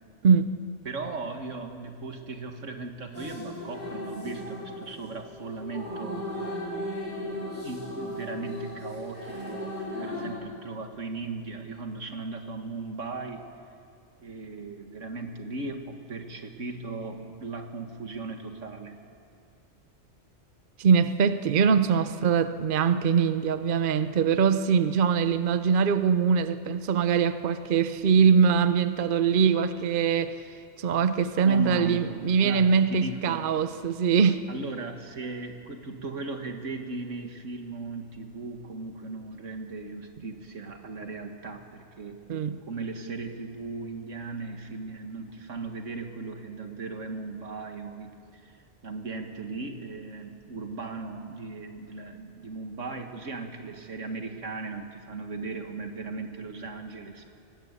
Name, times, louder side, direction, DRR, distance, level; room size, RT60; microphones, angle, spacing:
voice 1, 0.2-0.6 20.8-30.4 30.8-34.5 42.3-42.6, right 6 dB, 50° right, 0.8 m, -23 dB
voice 2, 0.9-6.2 7.1-13.5 14.2-19.0 31.4-33.5 34.5-42.2 42.7-48.5 48.8-57.3, right 3 dB, 90° right, 2.2 m, -37 dB
sound 1, 3.1-10.3, left 1 dB, 35° left, 6.6 m, -36 dB
24.0 x 19.0 x 8.3 m
omnidirectional pair, 1.2 m